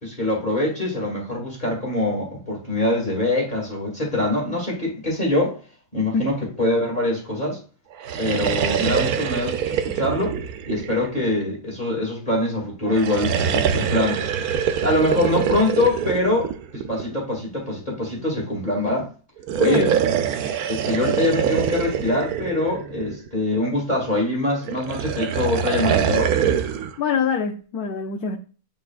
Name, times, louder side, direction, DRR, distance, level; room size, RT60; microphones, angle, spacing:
voice 1, 0.0-5.6 5.9-7.6 8.2-10.4 10.7-14.2 14.8-19.1 19.6-19.8 20.7-26.3, left 1 dB, 30° left, -3 dB, 2.6 m, -24 dB
sound 1, 7.9-11.6 12.9-17.2 19.4-23.4 24.7-26.9, right 8 dB, 80° right, 1.1 m, -24 dB
voice 2, 19.6-20.0 27.0-28.4, left 6 dB, 85° left, 1 dB, 1.3 m, -24 dB
10.5 x 3.8 x 2.5 m, 0.36 s
omnidirectional pair, 1.6 m